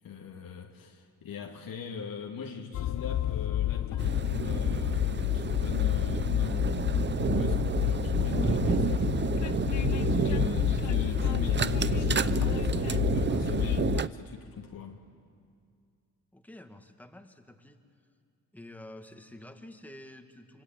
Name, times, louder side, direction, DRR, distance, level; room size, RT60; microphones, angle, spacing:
voice 1, 0.0-9.4 10.1-15.0, left 5 dB, 70° left, 1 dB, 2.1 m, -41 dB
Train, 2.7-14.0, left 13 dB, 55° left, 0.6 m, -29 dB
sound 1, 4.0-14.1, right 6 dB, 30° right, 0.6 m, -30 dB
voice 2, 16.3-17.8 18.5-20.6, left 1 dB, 5° left, 6 dB, 1.9 m, -49 dB
25.5 x 23.0 x 8.9 m, 2.3 s
cardioid pair, 90°, 35 cm